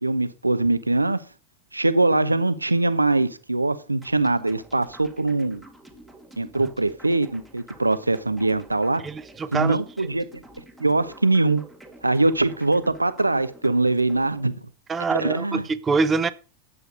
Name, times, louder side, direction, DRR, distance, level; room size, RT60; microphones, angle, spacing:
voice 1, 0.0-1.2 1.7-5.6 6.4-9.0 9.5-10.2 10.8-11.6 12.0-14.5 15.1-15.6, right 2 dB, 85° right, 0.8 m, -22 dB
sound 1, 4.0-14.5, right 1 dB, ahead, 2.0 m, -48 dB
voice 2, 9.0-9.8 14.9-16.3, right 4 dB, 20° right, 0.9 m, -24 dB
11.0 x 8.1 x 5.0 m
figure-of-eight pair, 90°, 0 cm